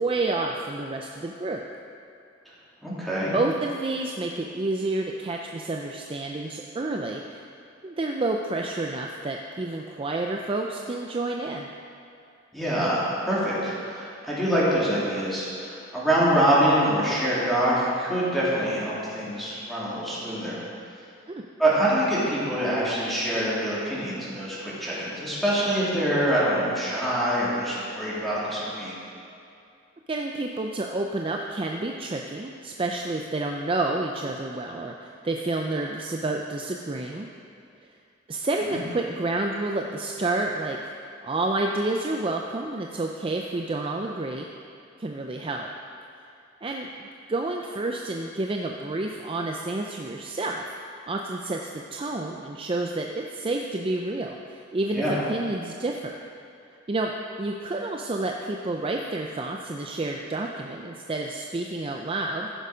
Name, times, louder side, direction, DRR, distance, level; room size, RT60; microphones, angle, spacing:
voice 1, 0.0-1.6 3.3-7.4 7.8-11.7 21.3-21.4 30.1-37.3 38.3-40.8 41.2-44.5 45.0-45.7 46.6-46.9 47.3-56.3 56.9-57.1 57.4-62.5, right 2 dB, 30° right, 1 dB, 0.5 m, -29 dB
voice 2, 2.8-3.3 12.5-20.6 21.6-29.0 38.6-38.8 54.9-55.2, right 1 dB, ahead, -9 dB, 3.1 m, -25 dB
14.5 x 6.8 x 5.1 m, 2.5 s
head